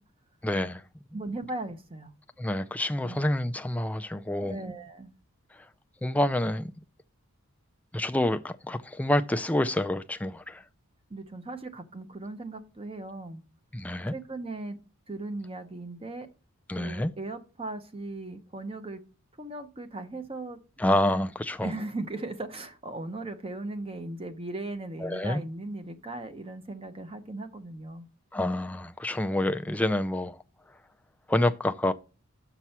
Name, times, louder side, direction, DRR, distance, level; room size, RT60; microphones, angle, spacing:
voice 1, 0.4-0.8 2.4-4.6 6.0-6.7 7.9-10.6 13.7-14.1 16.7-17.1 20.8-21.7 25.0-25.4 28.3-30.4 31.3-31.9, left 1 dB, 5° left, 0.3 m, -27 dB
voice 2, 1.1-2.1 3.0-3.2 4.4-5.1 11.1-13.4 14.1-14.8 15.1-16.3 16.7-19.0 19.4-20.6 21.6-28.1, right 2 dB, 25° right, 0.8 m, -38 dB
6.7 x 6.0 x 4.3 m
head